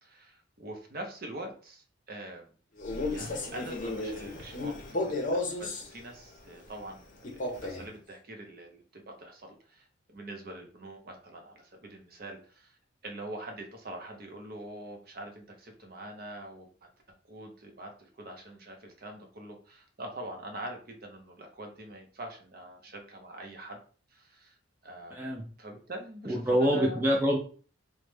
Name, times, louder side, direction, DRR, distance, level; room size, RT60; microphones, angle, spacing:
voice 1, 0.0-2.6 3.1-12.8 13.0-16.7 17.3-23.8 24.1-24.6 24.8-27.0, right 1 dB, 50° right, 3 dB, 0.6 m, -44 dB
Male speech man speaking, 2.8-5.9 7.2-7.9, left 2 dB, 40° left, 0.6 m, -33 dB
voice 2, 25.1-25.5 26.3-27.4, equal, 10° right, -2 dB, 0.4 m, -26 dB
3.1 x 2.1 x 3.2 m, 0.41 s
head